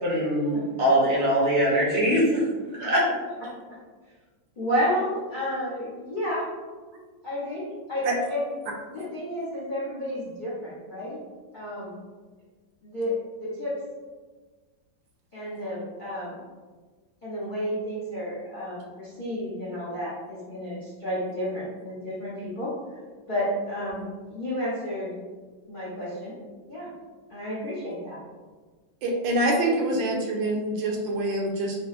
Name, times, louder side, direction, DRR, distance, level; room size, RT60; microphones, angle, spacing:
voice 1, 0.0-2.4 2.8-3.0, equal, 55° right, -5 dB, 0.7 m, -22 dB
voice 2, 4.6-6.5 7.2-8.5 8.9-11.2 11.5-12.0 12.8-13.8 15.3-16.4 17.2-22.7 23.3-25.1 25.7-26.3 26.7-26.9 27.3-28.2, equal, 85° left, -9 dB, 0.4 m, -31 dB
voice 3, 29.0-31.8, right 1 dB, 80° right, 0 dB, 1.3 m, -25 dB
5.8 x 2.0 x 2.4 m, 1.4 s
omnidirectional pair, 2.1 m